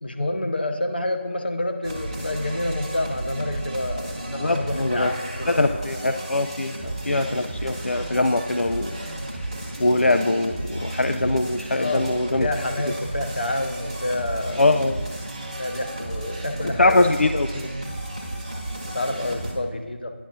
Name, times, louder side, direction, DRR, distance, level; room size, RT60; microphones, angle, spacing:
voice 1, 0.0-5.7 11.7-12.1 12.4-14.7 15.6-17.2 18.9-20.1, left 1 dB, 50° left, 6 dB, 0.7 m, -28 dB
sound 1, 1.8-19.5, right 1 dB, 25° right, 0.9 m, -33 dB
voice 2, 4.4-5.1 5.6-9.0 9.8-12.5 14.6-15.0 16.6-17.7, left 2 dB, 80° left, 7 dB, 0.3 m, -22 dB
10.0 x 6.0 x 2.6 m, 1.5 s
figure-of-eight pair, 170°, 7 cm